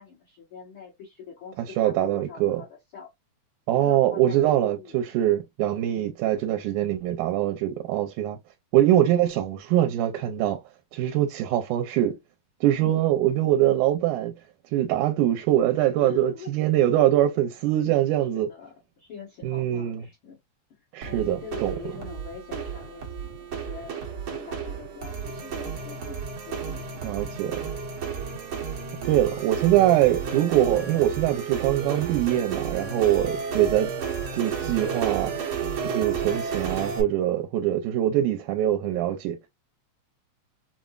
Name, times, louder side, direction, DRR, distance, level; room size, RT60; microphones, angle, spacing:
voice 1, 0.0-3.1 3.8-5.0 16.0-16.5 18.3-20.4 20.7-23.9 24.3-27.2 29.5-29.7, left 6 dB, 55° left, 1.7 m, -43 dB
voice 2, 1.7-2.6 3.7-8.4 8.7-10.6 10.9-12.2 12.6-14.3 14.7-18.5 19.4-20.0 20.9-21.7 27.0-27.6 29.0-33.9 34.3-35.3 35.8-39.4, right 12 dB, 85° right, 2.0 m, -23 dB
sound 1, 21.0-37.0, right 6 dB, 60° right, 1.5 m, -32 dB
5.6 x 2.1 x 2.3 m
omnidirectional pair, 3.4 m